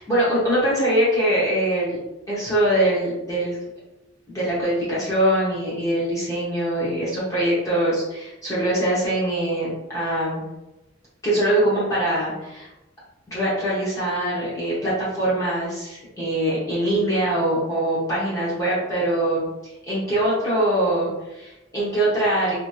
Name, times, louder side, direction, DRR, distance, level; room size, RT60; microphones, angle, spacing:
voice 1, 0.0-2.0 2.3-3.6 4.3-10.4 11.2-12.7 13.3-19.5 19.9-22.5, right 1 dB, 20° left, -9 dB, 0.8 m, -23 dB
2.9 x 2.7 x 2.3 m, 1.0 s
head